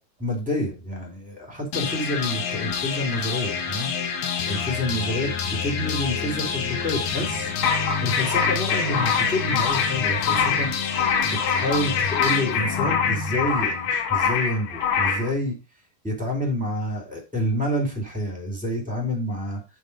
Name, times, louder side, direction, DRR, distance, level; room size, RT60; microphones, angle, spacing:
voice 1, 0.2-3.9 4.5-7.5 8.0-10.7 11.2-15.6 16.0-19.6, left 1 dB, ahead, 0 dB, 3.5 m, -28 dB
sound 1, 1.7-13.7, left 6 dB, 60° left, 2.5 m, -28 dB
sound 2, 7.6-15.3, left 6 dB, 80° left, 3.8 m, -24 dB
7.7 x 6.5 x 5.0 m, 0.27 s
omnidirectional pair, 5.3 m